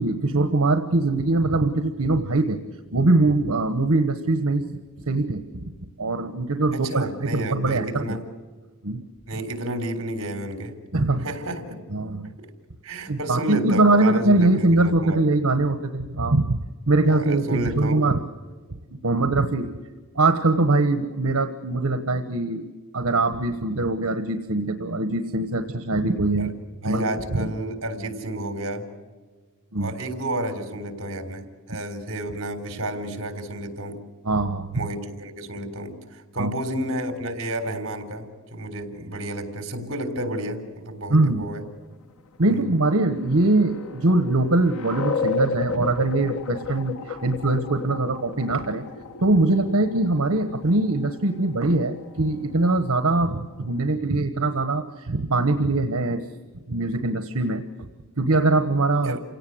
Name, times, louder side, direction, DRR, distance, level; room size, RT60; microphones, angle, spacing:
voice 1, 0.0-2.6 2.9-4.8 5.1-5.4 6.0-8.2 8.8-9.0 10.9-11.3 11.9-12.3 13.1-16.6 16.9-18.2 19.0-19.7 20.1-22.7 22.9-26.5 26.8-27.5 29.7-29.9 34.2-34.9 36.4-36.5 41.1-41.5 42.4-48.8 49.2-56.2 56.7-57.6 58.2-59.2, right 2 dB, 80° right, 8 dB, 1.3 m, -22 dB
voice 2, 6.7-8.2 9.3-10.8 11.2-11.8 12.4-12.5 12.8-15.2 17.0-18.0 19.1-19.3 26.4-26.5 26.8-28.9 29.8-34.0 34.7-41.6 42.5-42.7 59.0-59.2, right 1 dB, 60° right, 7 dB, 3.8 m, -31 dB
sound 1, 42.3-53.7, left 5 dB, 80° left, 1.1 m, -34 dB
28.5 x 17.5 x 8.0 m, 1.4 s
head